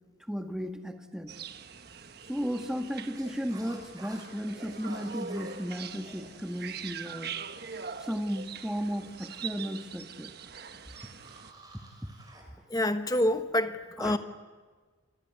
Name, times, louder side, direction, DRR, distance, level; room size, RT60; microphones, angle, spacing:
voice 1, 0.3-1.3 2.3-7.3 8.0-10.3 11.7-11.8 14.0-14.2, equal, 5° right, 1.7 m, -34 dB
sound 1, 1.3-11.5, right 6 dB, 55° right, 1.3 m, -43 dB
sound 2, 3.1-12.4, right 2 dB, 20° right, 6.3 m, -54 dB
voice 2, 12.7-14.2, left 1 dB, 20° left, 1.2 m, -27 dB
28.0 x 21.5 x 9.8 m
head